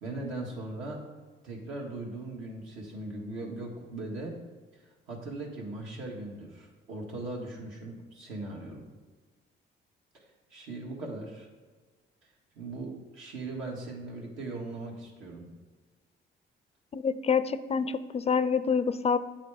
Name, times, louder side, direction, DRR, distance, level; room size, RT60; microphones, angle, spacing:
voice 1, 0.0-1.0 1.4-4.3 5.1-8.9 10.1-10.2 10.5-11.5 12.6-15.5, right 2 dB, 85° right, -1 dB, 1.8 m, -39 dB
voice 2, 16.9-19.2, left 6 dB, 30° left, 14 dB, 0.3 m, -27 dB
8.9 x 4.1 x 4.8 m, 1.4 s
cardioid pair, 90°, 20 cm